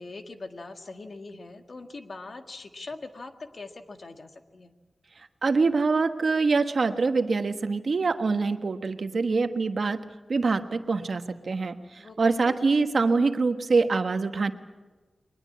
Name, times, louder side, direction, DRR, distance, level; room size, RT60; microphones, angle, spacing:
voice 1, 0.0-4.7 12.0-12.6, left 3 dB, 55° left, 6 dB, 1.8 m, -42 dB
voice 2, 5.4-10.0 10.3-14.5, right 4 dB, 60° right, 8 dB, 1.3 m, -24 dB
22.0 x 20.5 x 8.6 m, 1.2 s
wide cardioid pair, 110°, 0 cm